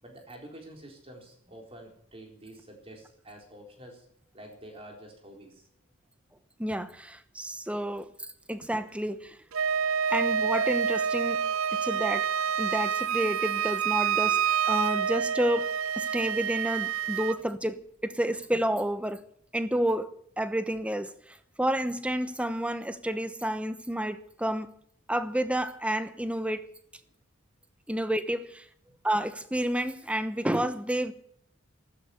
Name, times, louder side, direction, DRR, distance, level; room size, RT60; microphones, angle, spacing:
voice 1, 0.0-4.1 4.3-5.7, right 1 dB, 25° right, 4.0 m, -48 dB
voice 2, 6.6-9.4 10.1-12.3 12.6-19.2 19.5-20.1 20.4-24.7 25.1-26.6 27.9-28.6 29.0-31.1, right 1 dB, 5° right, 0.9 m, -30 dB
Wind instrument woodwind instrument, 9.5-17.4, right 7 dB, 80° right, 0.6 m, -28 dB
14.5 x 13.0 x 7.1 m
head